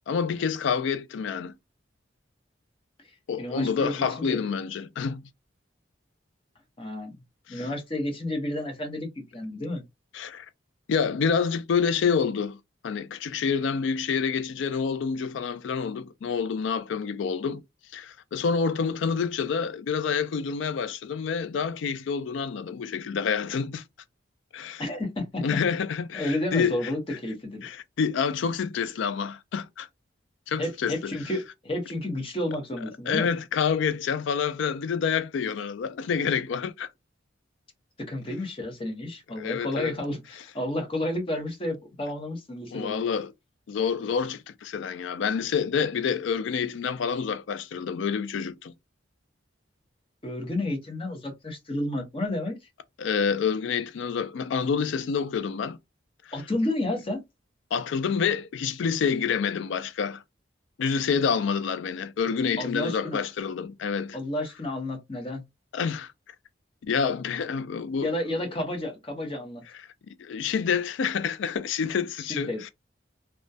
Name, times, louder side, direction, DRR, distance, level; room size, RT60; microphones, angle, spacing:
voice 1, 0.1-1.5 3.3-5.2 7.5-7.6 10.1-10.5 10.9-12.6 12.8-17.6 17.9-23.8 24.5-24.8 25.4-26.9 27.6-29.9 30.5-31.1 32.8-36.9 39.4-39.9 42.7-43.3 43.7-48.7 53.0-55.8 57.7-60.2 60.8-64.2 65.7-66.1 66.8-68.1 70.2-72.7, left 6 dB, 75° left, 0.3 m, -28 dB
voice 2, 3.4-4.4 6.8-7.2 7.5-9.8 24.8-25.4 26.1-27.7 30.6-33.3 38.1-43.1 50.2-52.6 56.3-57.2 62.6-63.2 64.1-65.4 68.0-69.6 72.3-72.6, left 1 dB, 30° left, 0.7 m, -31 dB
2.3 x 2.1 x 2.6 m
head